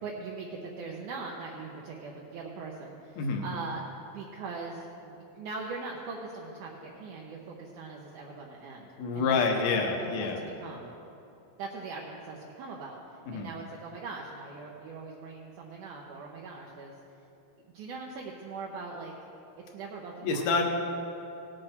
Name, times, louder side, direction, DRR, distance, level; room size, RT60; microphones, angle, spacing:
voice 1, 0.0-3.8 4.1-9.4 9.7-10.9 11.6-17.0 17.7-19.1 19.7-20.6, right 4 dB, 70° right, -3 dB, 2.2 m, -41 dB
voice 2, 9.0-10.5 13.3-13.5 20.2-20.6, left 4 dB, 60° left, 2 dB, 2.1 m, -27 dB
18.5 x 8.0 x 4.4 m, 2.9 s
omnidirectional pair, 4.1 m